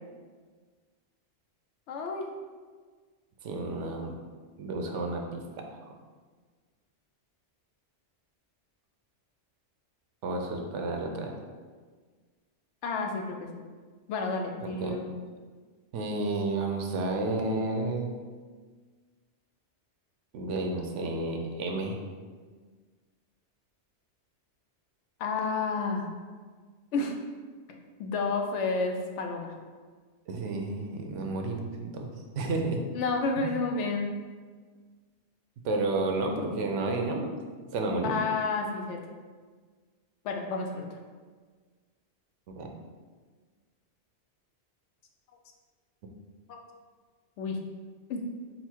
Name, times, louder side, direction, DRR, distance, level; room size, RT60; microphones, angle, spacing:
voice 1, 1.9-2.3 12.8-13.5 14.1-15.1 25.2-26.1 26.9-27.1 28.0-29.6 32.9-34.1 38.0-39.0 40.2-41.0 46.5-46.6 47.4-47.6 48.1-48.3, left 4 dB, 80° left, 2 dB, 0.9 m, -30 dB
voice 2, 3.4-4.2 4.6-5.4 5.7-5.9 10.2-11.4 14.6-15.0 15.9-18.2 20.3-22.0 30.3-32.8 33.4-33.5 35.6-37.3 37.7-38.2 42.5-42.7, right 2 dB, 90° right, 3 dB, 0.9 m, -31 dB
4.0 x 2.1 x 4.4 m, 1.5 s
omnidirectional pair, 1.2 m